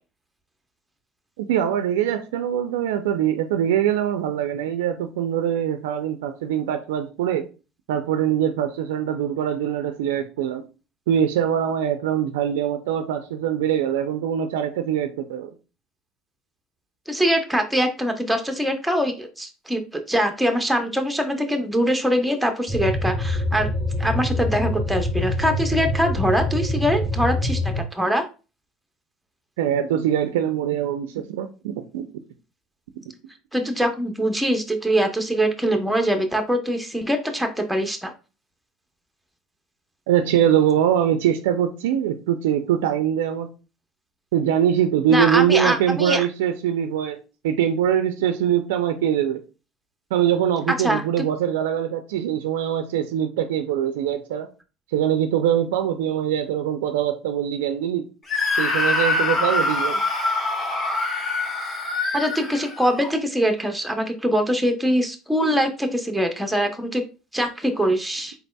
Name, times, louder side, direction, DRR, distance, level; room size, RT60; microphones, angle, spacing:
voice 1, 1.4-7.4 7.9-10.6 11.1-15.5 29.6-32.1 40.1-43.5 44.3-47.2 47.4-49.4 50.1-54.5 54.9-58.0 58.6-60.0, right 9 dB, 85° right, 8 dB, 0.4 m, -23 dB
voice 2, 17.1-23.7 24.0-28.2 33.5-38.1 45.1-46.3 50.8-51.0 62.1-67.0 67.3-68.3, equal, ahead, 4 dB, 0.8 m, -23 dB
sound 1, 22.7-27.8, left 1 dB, 20° left, 1.4 m, -25 dB
Screaming, 58.3-63.1, left 3 dB, 35° left, 1.6 m, -24 dB
4.1 x 3.9 x 2.2 m, 0.32 s
supercardioid pair, 90°, 0 cm